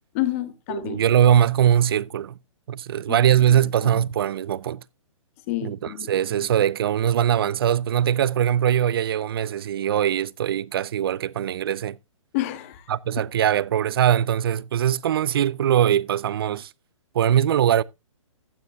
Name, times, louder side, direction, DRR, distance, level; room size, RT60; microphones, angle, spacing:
voice 1, 0.1-1.0 3.1-4.0 5.5-6.1 12.3-12.8, left 15 dB, 25° left, 1.2 m, -30 dB
voice 2, 0.7-2.4 2.7-4.8 5.6-12.0 12.9-16.7 17.1-17.8, right 10 dB, 45° right, 0.4 m, -21 dB
15.0 x 9.5 x 2.2 m
hypercardioid pair, 165°, 17 cm